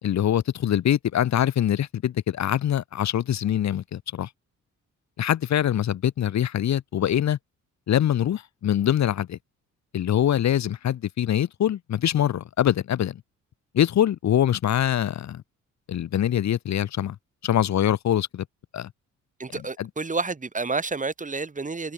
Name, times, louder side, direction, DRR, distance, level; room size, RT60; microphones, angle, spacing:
voice 1, 0.0-4.3 5.2-7.4 7.9-9.4 9.9-13.2 13.7-15.4 15.9-17.2 17.4-18.5 18.7-18.9 19.8-19.9, left 10 dB, 65° left, 2.5 m, -24 dB
voice 2, 19.4-21.9, right 4 dB, 25° right, 4.5 m, -29 dB
cardioid pair, 90°, 30 cm